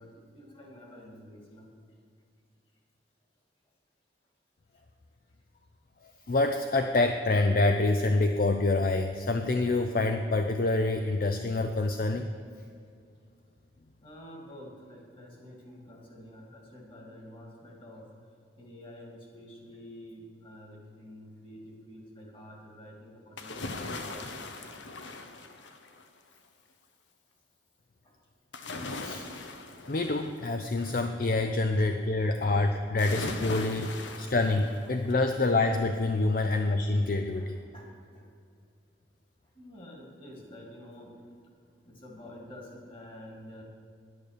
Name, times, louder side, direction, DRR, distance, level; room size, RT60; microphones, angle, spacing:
voice 1, 0.0-1.9 4.7-4.8 14.0-24.5 28.0-28.2 30.9-31.0 33.9-34.4 36.4-36.6 37.3-38.3 39.5-41.3 41.8-43.6, left 1 dB, 30° left, 0 dB, 2.4 m, -49 dB
voice 2, 6.0-12.3 29.0-29.2 29.9-33.9 34.2-37.6, left 2 dB, 50° left, 6 dB, 0.5 m, -26 dB
sound 1, 23.4-26.2 28.5-31.1 33.0-35.3 35.7-35.8, left 3 dB, 85° left, 1.0 m, -40 dB
10.5 x 9.5 x 6.6 m, 2.3 s
head